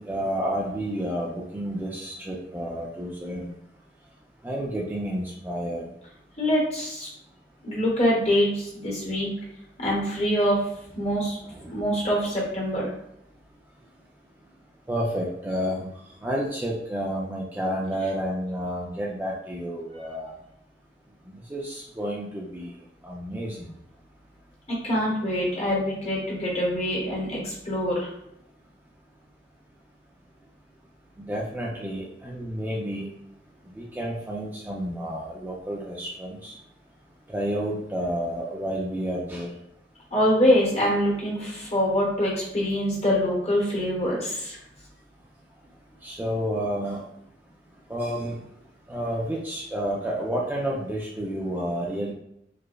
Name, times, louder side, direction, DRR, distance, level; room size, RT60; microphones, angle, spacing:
voice 1, 0.0-3.5 4.4-5.8 11.5-11.7 14.9-15.9 16.2-20.3 21.3-22.7 23.0-23.7 31.2-33.1 33.8-36.5 37.3-39.5 46.0-47.0 47.9-48.4 48.9-52.1, equal, 10° right, -3 dB, 0.3 m, -30 dB
voice 2, 6.4-7.1 7.6-9.3 9.8-10.6 11.0-11.4 11.7-12.9 24.7-28.1 40.1-44.6, equal, 35° left, -3 dB, 1.0 m, -24 dB
4.8 x 2.0 x 2.2 m, 0.78 s
head